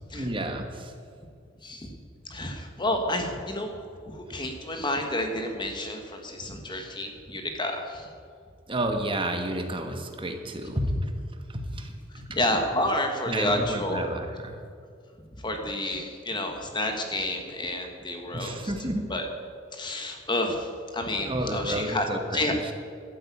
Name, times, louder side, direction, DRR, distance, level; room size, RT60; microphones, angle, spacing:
voice 1, 0.1-0.9 8.7-11.2 11.5-12.3 13.3-14.6 18.3-19.1 21.2-22.7, right 1 dB, 25° right, 5 dB, 1.4 m, -31 dB
voice 2, 2.3-3.8 4.0-8.1 12.3-14.1 15.4-18.6 19.1-19.3 19.7-20.7 20.9-22.0 22.3-22.5, left 1 dB, 25° left, 4 dB, 1.4 m, -30 dB
12.0 x 9.2 x 8.4 m, 2.3 s
head